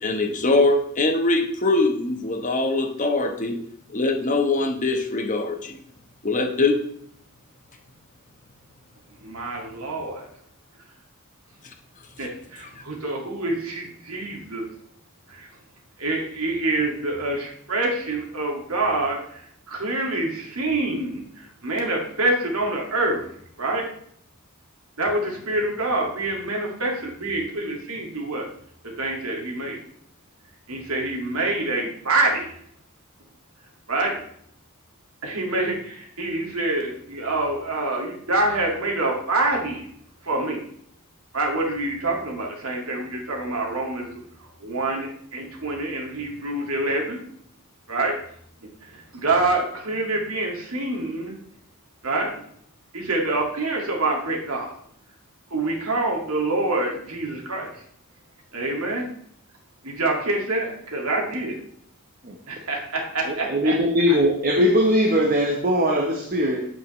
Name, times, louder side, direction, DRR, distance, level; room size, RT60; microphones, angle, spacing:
voice 1, 0.0-3.6 3.9-5.8 6.2-6.8, left 2 dB, 35° left, 4 dB, 1.1 m, -22 dB
voice 2, 9.2-10.3 12.2-14.7 15.3-15.5 16.0-23.2 23.6-23.9 25.0-28.5 29.0-29.8 30.7-32.5 33.9-34.3 35.2-39.9 40.2-40.6 41.3-47.2 47.9-48.2 48.8-51.3 52.0-52.4 52.9-54.8 55.5-57.8 58.5-59.1 59.8-61.6 62.5-63.8 64.1-64.2, right 2 dB, 85° right, 0 dB, 2.0 m, -26 dB
voice 3, 63.3-66.7, equal, 40° right, 2 dB, 0.9 m, -20 dB
8.4 x 7.8 x 3.1 m, 0.65 s
head